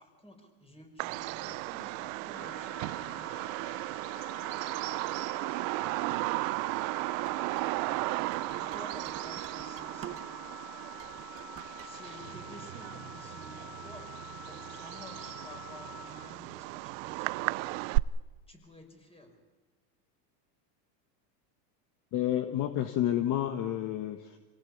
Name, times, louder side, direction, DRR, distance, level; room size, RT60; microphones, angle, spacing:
voice 1, 0.0-3.4 8.5-10.4 11.8-14.1 14.4-17.7 18.5-19.3, left 1 dB, 10° left, 4 dB, 5.8 m, -52 dB
Bird vocalization bird call bird song, 1.0-18.0, right 23 dB, 55° right, 0.7 m, -35 dB
Wind instrument woodwind instrument, 2.3-16.4, left 5 dB, 60° left, 5.1 m, -48 dB
sound 1, 7.2-10.6 10.9-11.9, right 11 dB, 25° right, 1.4 m, -49 dB
voice 2, 22.1-24.4, left 12 dB, 40° left, 8 dB, 1.5 m, -30 dB
27.5 x 18.0 x 8.7 m, 1.3 s
supercardioid pair, 130°, 49 cm